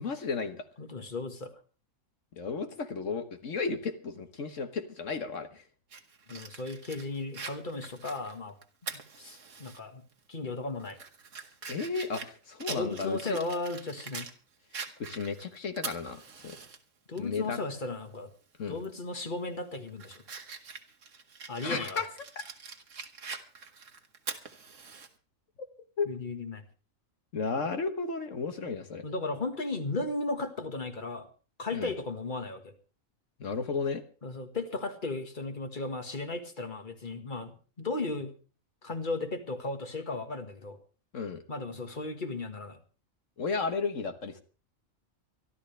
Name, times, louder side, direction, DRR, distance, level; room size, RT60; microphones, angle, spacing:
voice 1, 0.0-0.7 2.4-5.6 11.6-13.4 14.7-16.5 17.2-17.6 18.6-18.8 21.6-22.1 26.0-26.1 27.3-29.0 31.7-31.9 33.4-34.0 41.1-41.4 43.4-44.4, left 4 dB, 65° left, 7 dB, 1.6 m, -33 dB
voice 2, 0.8-1.5 6.3-8.6 8.8-10.0 10.3-11.0 12.7-14.3 17.1-18.3 18.7-20.2 21.5-22.0 26.1-26.6 28.6-28.7 29.0-31.3 31.6-32.8 34.2-38.3 38.8-40.8 41.5-42.8, left 2 dB, 35° left, 7 dB, 1.8 m, -35 dB
Fire, 5.9-9.8 10.2-10.3 10.8-14.3 14.7-16.8 17.2-17.3 18.8-19.0 19.5-25.1, right 5 dB, 65° right, 1.8 m, -43 dB
24.5 x 12.5 x 3.3 m, 0.36 s
omnidirectional pair, 1.4 m